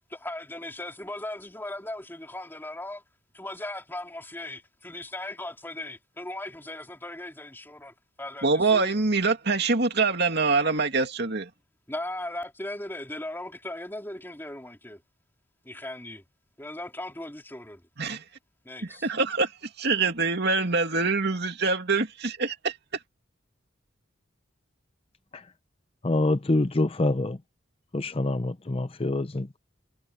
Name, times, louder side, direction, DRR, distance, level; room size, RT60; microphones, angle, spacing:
voice 1, 0.1-3.0 3.3-8.9 11.9-15.0 15.6-16.2 16.6-17.8 18.6-19.1, left 1 dB, 10° left, 3.2 m, -38 dB
voice 2, 8.4-11.5 18.0-18.2 18.8-19.5 19.8-22.8, right 4 dB, 60° right, 2.6 m, -24 dB
voice 3, 26.0-27.4 27.9-29.6, left 2 dB, 30° left, 0.6 m, -26 dB
head